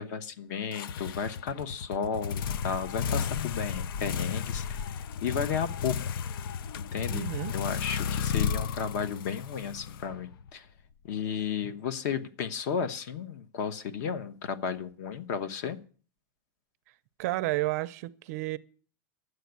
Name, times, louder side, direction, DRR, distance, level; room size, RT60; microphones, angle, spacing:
voice 1, 0.0-4.6 5.2-6.0 6.7-10.7 11.0-15.8, left 7 dB, 50° left, 1.1 m, -33 dB
sound 1, 0.7-10.5, left 7 dB, 65° left, 0.5 m, -33 dB
voice 2, 7.1-7.5 17.2-18.6, right 18 dB, 40° right, 0.5 m, -31 dB
11.0 x 7.9 x 9.4 m
supercardioid pair, 180°, 12 cm